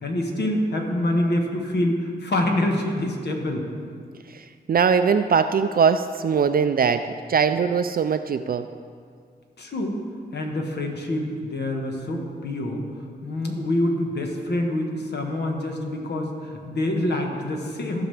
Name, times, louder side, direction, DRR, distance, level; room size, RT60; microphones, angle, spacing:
voice 1, 0.0-3.6 9.6-10.0 10.3-12.8 13.2-18.1, left 1 dB, 70° left, 1 dB, 1.4 m, -26 dB
voice 2, 4.3-8.6, right 6 dB, 55° right, 9 dB, 0.4 m, -21 dB
15.0 x 6.0 x 3.4 m, 2.1 s
cardioid pair, 55°, 18 cm